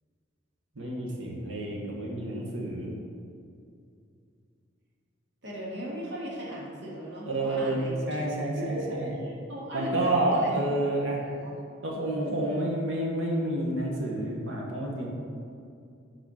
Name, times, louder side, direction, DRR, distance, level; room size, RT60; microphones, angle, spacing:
voice 1, 0.7-2.9 7.3-9.2 9.7-11.2 11.8-15.1, right 1 dB, 90° right, -2 dB, 1.3 m, -29 dB
voice 2, 5.4-8.2 8.6-10.7 11.2-11.5 12.3-12.8, equal, 65° right, -4 dB, 1.7 m, -38 dB
6.3 x 4.9 x 6.2 m, 2.4 s
head